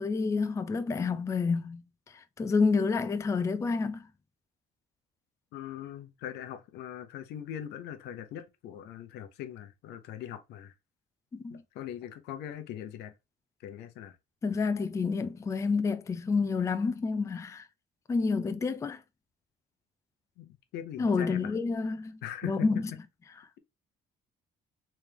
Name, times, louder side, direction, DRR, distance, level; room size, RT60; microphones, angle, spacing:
voice 1, 0.0-1.8 2.1-4.1 11.3-11.6 14.4-17.7 18.1-19.0 21.0-22.9, left 4 dB, 20° left, 0.4 m, -29 dB
voice 2, 5.5-10.7 11.5-13.1 13.6-14.2 20.4-21.6 22.2-22.7, left 10 dB, 85° left, 0.7 m, -41 dB
3.4 x 3.2 x 3.3 m
cardioid pair, 110°, 17 cm